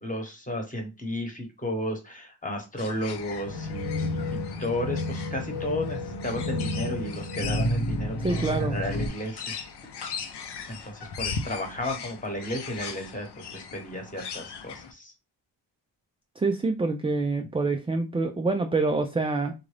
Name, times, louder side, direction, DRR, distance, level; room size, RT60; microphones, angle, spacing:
voice 1, 0.0-9.5 10.7-15.1, left 1 dB, 15° left, 3 dB, 1.1 m, -33 dB
sound 1, 2.8-14.9, left 6 dB, 60° left, 0.7 m, -39 dB
sound 2, 3.4-9.1, left 1 dB, 75° left, 1.1 m, -30 dB
voice 2, 8.2-8.8 16.4-19.5, right 3 dB, 15° right, 4 dB, 0.3 m, -26 dB
3.6 x 2.5 x 3.3 m, 0.27 s
cardioid pair, 100°, 45 cm